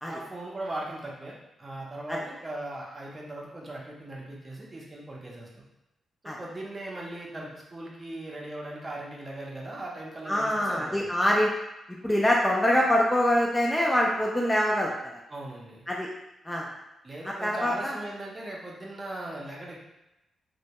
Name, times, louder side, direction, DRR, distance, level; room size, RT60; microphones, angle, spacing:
voice 1, 0.0-5.5 6.2-11.1 15.3-15.9 17.0-19.8, right 1 dB, 30° right, -3 dB, 0.6 m, -39 dB
voice 2, 10.3-11.5 12.0-14.9 15.9-16.1 16.4-16.7 17.4-18.0, left 1 dB, 10° left, -2 dB, 0.3 m, -24 dB
2.1 x 2.1 x 2.8 m, 0.93 s
cardioid pair, 85°, 0 cm